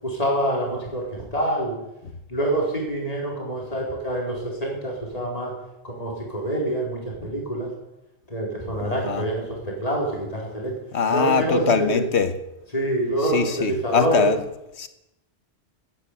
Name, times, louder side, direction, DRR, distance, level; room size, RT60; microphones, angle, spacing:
voice 1, 0.0-1.8 2.3-5.5 5.8-7.7 8.3-10.7 11.1-11.9 12.7-14.3, right 1 dB, 35° left, 4.8 m, -26 dB
voice 2, 8.8-9.2 10.9-12.3 13.3-14.4 14.8-14.9, left 6 dB, 80° left, 1.5 m, -22 dB
13.0 x 12.0 x 8.3 m
omnidirectional pair, 1.1 m